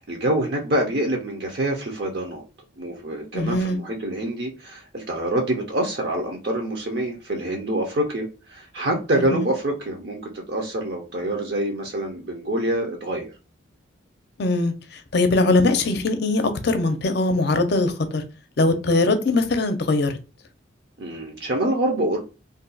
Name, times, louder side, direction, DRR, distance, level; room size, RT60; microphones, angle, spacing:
voice 1, 0.0-2.4 2.8-13.3 21.0-22.2, right 1 dB, 55° right, 0.6 m, -26 dB
voice 2, 3.3-3.8 9.3-9.5 14.4-14.7 15.1-18.2 18.6-20.1, left 2 dB, 55° left, 0.5 m, -21 dB
2.6 x 2.3 x 3.8 m
head